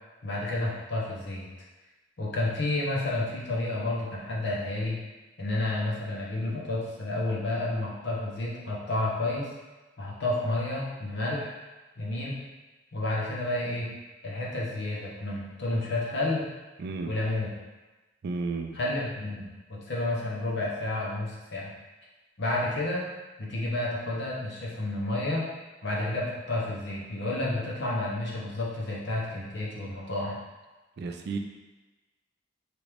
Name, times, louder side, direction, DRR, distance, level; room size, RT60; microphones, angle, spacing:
voice 1, 0.2-1.5 2.2-5.0 5.4-9.5 10.0-11.5 12.0-12.4 12.9-13.9 14.2-16.5 17.1-17.5 18.7-21.7 22.4-23.1 23.4-25.5 25.8-30.4, left 2 dB, 65° left, -4 dB, 0.8 m, -30 dB
voice 2, 16.8-17.1 18.2-18.8 31.0-31.4, right 4 dB, 60° right, 4 dB, 0.3 m, -32 dB
3.0 x 2.5 x 3.3 m, 1.2 s
head